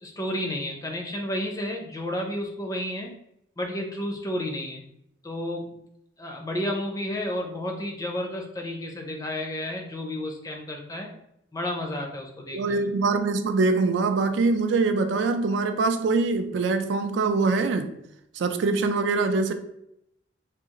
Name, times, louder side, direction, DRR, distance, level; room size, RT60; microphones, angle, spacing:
voice 1, 0.0-3.1 3.6-4.8 5.2-5.8 6.2-11.1 11.5-12.9, left 1 dB, 20° left, 0.5 m, -31 dB
voice 2, 12.5-17.9 18.3-19.5, right 3 dB, 70° right, 0.3 m, -23 dB
3.6 x 2.4 x 2.9 m
head